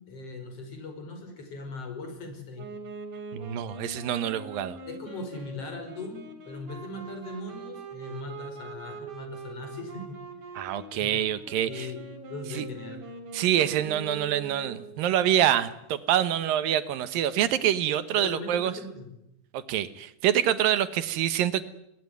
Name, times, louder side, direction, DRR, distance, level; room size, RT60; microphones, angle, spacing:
voice 1, 0.1-2.7 4.9-10.4 11.0-11.2 11.7-12.0 12.3-13.0 18.2-19.1, left 3 dB, 40° left, 6 dB, 6.1 m, -39 dB
Wind instrument woodwind instrument, 2.5-15.0, right 3 dB, 60° right, 4.8 m, -42 dB
voice 2, 3.3-4.8 10.6-11.9 12.6-12.7 13.3-18.7 19.5-21.6, right 11 dB, 75° right, 13 dB, 2.9 m, -26 dB
22.0 x 19.0 x 9.5 m, 0.82 s
omnidirectional pair, 4.2 m